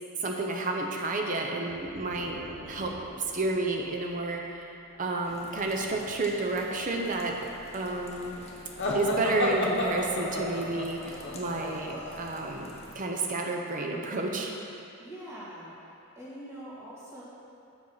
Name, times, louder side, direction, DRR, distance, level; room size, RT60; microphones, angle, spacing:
voice 1, 0.2-2.4 2.7-4.7 5.0-7.4 7.7-8.4 8.9-14.5, right 2 dB, 40° right, 1 dB, 0.7 m, -31 dB
sound 1, 1.7-5.4, equal, 70° right, 0.8 m, -48 dB
sound 2, 5.2-13.0, left 1 dB, 30° left, 0.9 m, -48 dB
sound 3, 8.8-12.5, left 2 dB, 55° left, 1.0 m, -31 dB
voice 2, 15.0-15.8 16.2-17.2, right 1 dB, 15° right, -9 dB, 2.0 m, -43 dB
7.3 x 5.2 x 5.6 m, 2.7 s
head